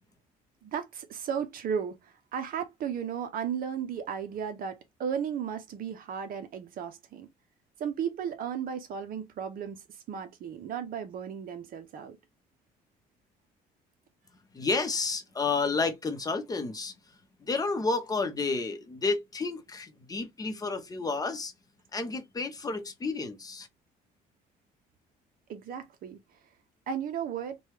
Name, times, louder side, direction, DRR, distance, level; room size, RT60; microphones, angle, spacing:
voice 1, 0.6-7.3 7.8-12.2 25.5-26.2 26.9-27.6, right 7 dB, 55° right, 0.6 m, -35 dB
voice 2, 14.5-16.9 17.5-21.5 21.9-23.7, left 4 dB, 20° left, 0.7 m, -31 dB
3.0 x 2.2 x 3.1 m
cardioid pair, 110°, 17 cm